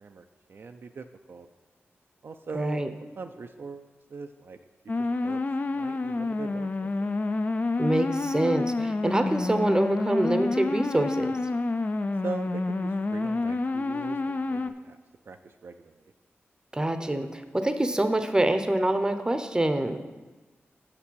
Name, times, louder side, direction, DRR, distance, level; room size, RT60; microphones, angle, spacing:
voice 1, 0.0-1.5 2.2-4.6 5.0-5.4 5.7-7.1 12.2-15.0 15.3-15.9, right 4 dB, 55° right, 6 dB, 0.4 m, -41 dB
voice 2, 2.5-2.9 7.8-11.4 16.7-20.0, right 1 dB, 15° right, 8 dB, 0.6 m, -25 dB
sound 1, 4.9-14.7, left 3 dB, 35° left, 0.4 m, -28 dB
6.5 x 5.9 x 6.3 m, 1.2 s
cardioid pair, 70°, 5 cm